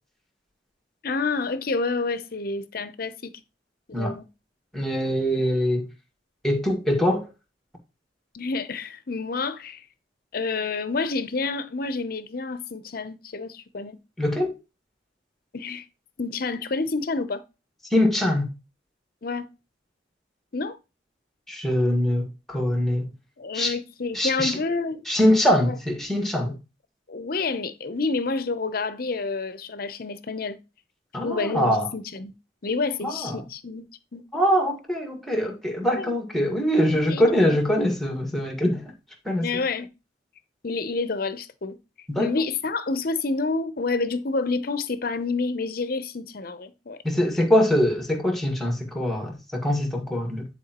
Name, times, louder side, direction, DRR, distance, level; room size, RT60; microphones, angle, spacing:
voice 1, 1.0-3.3 3.9-4.3 8.3-9.8 10.3-14.0 15.5-15.9 16.2-17.4 19.2-19.5 20.5-20.8 23.4-25.1 25.6-25.8 26.5-26.6 27.1-30.6 31.2-32.3 32.6-34.2 35.9-36.1 37.1-37.6 39.4-39.9 40.6-41.8 42.2-47.0 47.3-47.4, left 3 dB, 55° left, 0.7 m, -29 dB
voice 2, 4.7-5.8 6.4-7.3 14.2-14.5 17.9-18.5 21.5-23.1 23.5-23.7 24.1-24.6 25.1-26.5 31.1-31.9 33.0-33.4 34.3-38.8 39.2-39.4 42.1-42.3 47.0-50.4, equal, ahead, 1.7 m, -23 dB
10.0 x 4.5 x 3.0 m
head